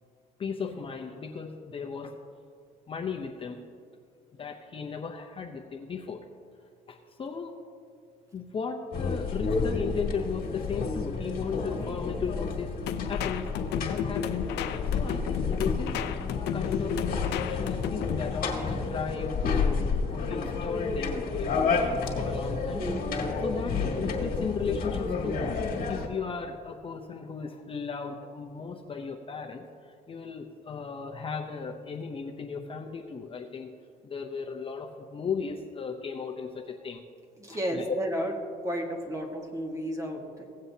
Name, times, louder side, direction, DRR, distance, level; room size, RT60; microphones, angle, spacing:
voice 1, 0.4-2.1 2.9-3.6 4.3-6.2 6.9-7.5 8.3-12.8 13.1-13.5 13.8-16.0 16.5-22.8 23.4-25.4 25.9-29.7 30.1-33.7 34.0-37.0 37.7-37.9, left 5 dB, 30° left, 2 dB, 0.7 m, -36 dB
sound 1, 8.9-26.1, left 4 dB, 60° left, 1.7 m, -30 dB
sound 2, 12.9-18.4, left 7 dB, 80° left, 0.6 m, -33 dB
voice 2, 22.7-23.0 37.4-38.3 38.6-40.5, equal, 20° right, 1 dB, 1.6 m, -32 dB
17.0 x 7.6 x 2.8 m, 2.3 s
cardioid pair, 110°, 17 cm